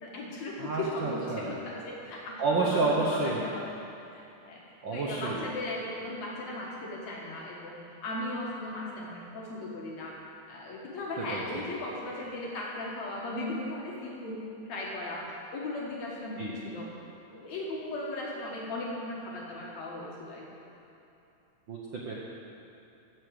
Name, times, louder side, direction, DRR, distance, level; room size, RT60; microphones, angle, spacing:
voice 1, 0.0-3.7 4.1-10.2 10.5-14.4 14.7-15.2 15.5-16.9 17.3-20.5, left 2 dB, 70° left, -4 dB, 2.5 m, -37 dB
voice 2, 0.6-1.5 2.4-3.4 4.8-5.4 11.2-11.6 16.4-16.5 21.7-22.2, right 3 dB, 70° right, -3 dB, 1.1 m, -30 dB
14.5 x 5.0 x 7.7 m, 2.9 s
omnidirectional pair, 3.4 m